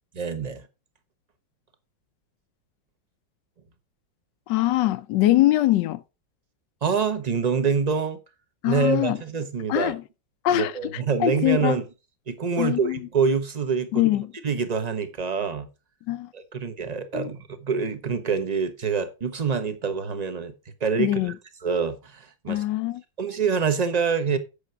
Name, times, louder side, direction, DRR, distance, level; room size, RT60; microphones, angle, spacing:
voice 1, 0.2-0.7 6.8-8.2 8.6-10.0 10.5-11.8 12.3-14.0 14.4-15.7 16.3-20.5 20.8-21.3 21.6-22.6 23.2-24.4, right 5 dB, 30° right, 0.7 m, -26 dB
voice 2, 4.5-6.0 8.6-9.2 9.7-10.0 10.4-10.7 11.2-11.8 12.6-13.0 13.9-14.3 16.1-16.3 17.1-17.3 21.0-21.4 22.5-23.0, left 15 dB, 75° left, 1.2 m, -22 dB
8.5 x 6.4 x 4.5 m
omnidirectional pair, 2.1 m